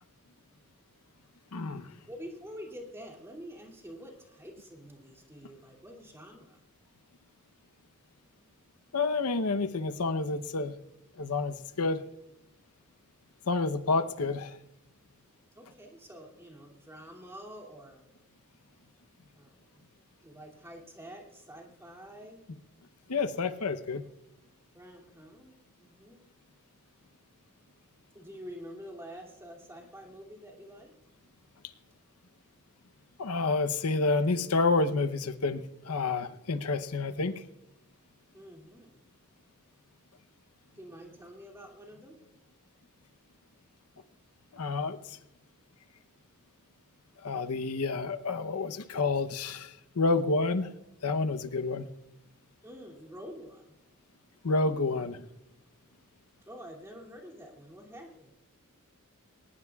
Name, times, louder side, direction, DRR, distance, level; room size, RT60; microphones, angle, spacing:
voice 1, 1.5-1.9 8.9-10.8 11.2-12.0 13.5-14.6 23.1-24.1 33.2-37.4 44.5-45.2 47.2-50.7 51.0-51.9 54.4-55.2, left 3 dB, 90° left, 10 dB, 0.9 m, -29 dB
voice 2, 2.1-6.6 15.6-18.1 19.3-19.7 20.2-22.4 24.7-26.3 28.1-30.9 38.3-39.0 40.8-42.2 52.6-53.7 56.5-58.3, equal, 10° right, 0 dB, 2.7 m, -47 dB
20.5 x 19.5 x 2.4 m, 0.87 s
head